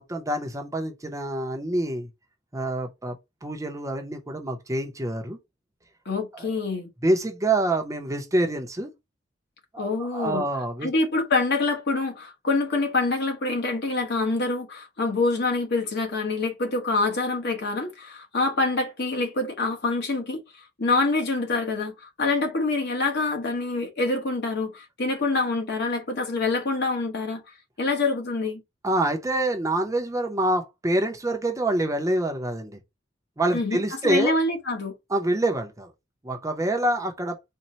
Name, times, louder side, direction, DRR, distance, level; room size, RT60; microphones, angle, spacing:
voice 1, 0.1-2.1 2.5-5.4 6.3-6.5 7.0-8.9 9.7-10.9 28.8-32.8 33.4-34.4 35.1-35.9 36.2-37.4, right 1 dB, 15° right, 0.6 m, -26 dB
voice 2, 6.0-6.9 9.8-10.5 10.8-27.4 27.8-28.6 33.5-34.9, left 3 dB, 60° left, 1.1 m, -26 dB
4.2 x 2.1 x 4.0 m
head